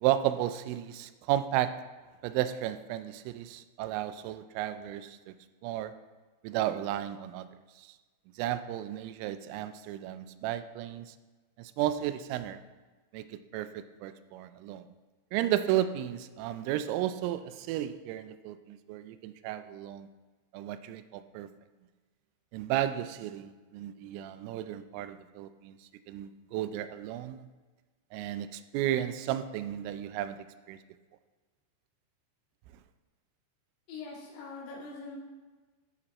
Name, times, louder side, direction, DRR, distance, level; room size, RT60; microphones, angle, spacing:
voice 1, 0.0-1.8 2.2-5.3 5.6-6.0 6.4-7.5 7.8-7.9 8.4-11.2 11.6-12.6 13.1-14.9 15.3-20.1 20.5-21.5 22.5-25.8 26.1-27.5 28.1-30.8, right 12 dB, 90° right, 11 dB, 3.1 m, -33 dB
voice 2, 33.9-35.2, left 3 dB, 85° left, -4 dB, 4.7 m, -43 dB
13.0 x 6.2 x 4.1 m, 1.3 s
omnidirectional pair, 5.7 m